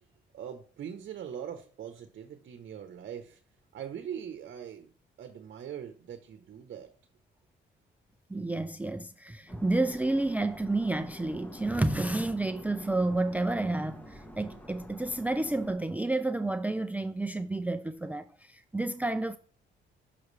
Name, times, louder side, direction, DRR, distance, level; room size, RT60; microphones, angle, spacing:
voice 1, 0.3-3.4 3.7-4.9 5.2-6.9, right 9 dB, 60° right, 0.9 m, -41 dB
voice 2, 8.3-19.4, right 2 dB, 10° right, 0.4 m, -30 dB
sound 1, 9.5-15.7, equal, 10° left, 1.0 m, -48 dB
6.4 x 5.8 x 3.2 m
cardioid pair, 90°, 20 cm